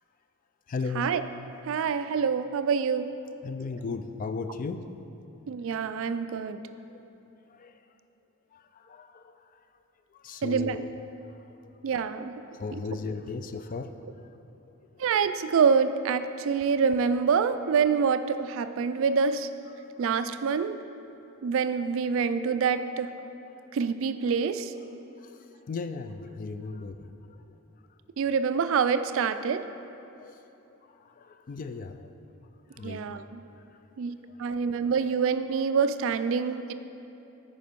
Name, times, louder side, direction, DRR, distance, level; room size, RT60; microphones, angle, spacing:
voice 1, 0.7-1.1 3.4-4.9 6.9-7.0 7.5-7.8 8.5-9.6 10.1-11.0 11.3-11.7 12.5-13.9 14.9-15.0 25.2-27.6 30.2-30.4 30.8-32.2 32.7-33.1 34.4-34.6, left 4 dB, 35° left, 9 dB, 0.3 m, -37 dB
voice 2, 1.7-3.1 5.5-6.6 10.4-10.8 11.8-12.4 14.0-14.1 15.0-19.5 20.0-20.8 21.4-23.2 23.7-24.7 28.2-29.6 32.8-33.4 34.0-36.7, right 6 dB, 60° right, 11 dB, 0.3 m, -26 dB
9.4 x 5.0 x 5.3 m, 3.0 s
head